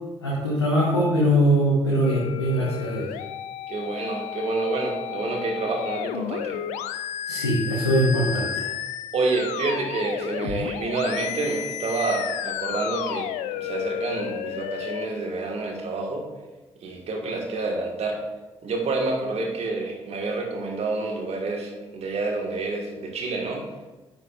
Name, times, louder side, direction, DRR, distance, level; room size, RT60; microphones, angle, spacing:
voice 1, 0.2-3.1 7.3-8.7, equal, 85° left, -4 dB, 1.0 m, -22 dB
sound 1, 2.0-15.1, left 10 dB, 60° left, 0.4 m, -32 dB
voice 2, 3.7-6.6 9.1-16.3 16.8-18.2 18.6-23.6, right 3 dB, 50° right, 1 dB, 1.6 m, -28 dB
9.6 x 8.6 x 2.5 m, 1.2 s
figure-of-eight pair, 40°, 14 cm